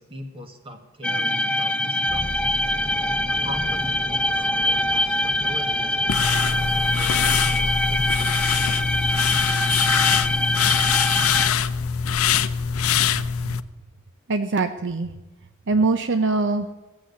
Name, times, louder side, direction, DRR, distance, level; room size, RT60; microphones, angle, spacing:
voice 1, 0.0-2.6 3.3-8.5, equal, 25° right, 6 dB, 1.8 m, -40 dB
sound 1, 1.0-11.5, left 1 dB, 5° left, 0.5 m, -24 dB
sound 2, 2.1-12.1 12.3-12.5, left 1 dB, 30° left, 1.1 m, -40 dB
sound 3, 6.1-13.6, left 7 dB, 75° left, 0.6 m, -23 dB
voice 2, 12.9-13.5 14.3-15.1 15.7-16.7, right 3 dB, 55° right, 9 dB, 0.7 m, -23 dB
15.5 x 7.7 x 8.3 m, 1.1 s
head